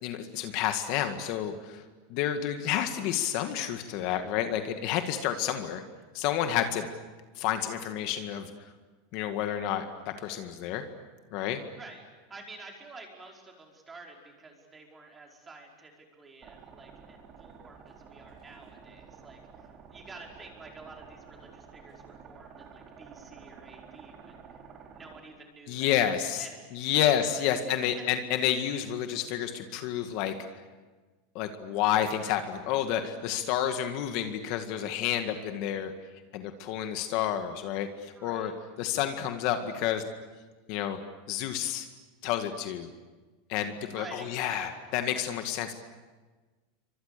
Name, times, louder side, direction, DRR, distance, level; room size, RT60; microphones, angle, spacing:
voice 1, 0.0-1.8 2.1-5.8 6.1-6.9 7.4-8.5 9.1-10.8 11.3-11.6 25.7-26.5 26.7-30.3 31.4-35.9 36.3-38.5 38.8-40.0 40.7-41.0 41.3-41.9 42.2-42.9 43.5-45.7, left 10 dB, 50° left, 7 dB, 2.0 m, -30 dB
voice 2, 11.8-24.4 24.9-26.0 26.3-27.0 27.3-28.0 38.1-38.5 43.9-45.0, right 3 dB, 15° right, 1 dB, 5.0 m, -49 dB
sound 1, 16.4-25.2, right 6 dB, 30° right, 3.0 m, -51 dB
30.0 x 25.0 x 6.9 m, 1.3 s
supercardioid pair, 155°, 0 cm